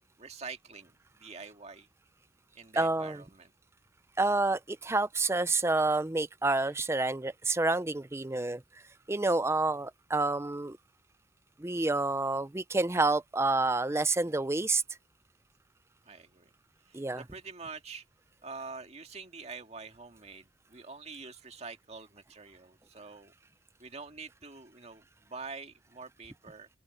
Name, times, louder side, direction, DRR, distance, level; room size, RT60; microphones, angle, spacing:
voice 1, 0.2-0.9 1.2-1.9 2.6-3.5 16.1-16.5 16.9-18.0 18.4-23.3 23.8-26.7, right 4 dB, 40° right, 2.1 m, -46 dB
voice 2, 2.8-3.2 4.2-8.6 9.1-10.8 11.6-14.8 16.9-17.2, right 2 dB, 15° right, 0.5 m, -28 dB
open air
head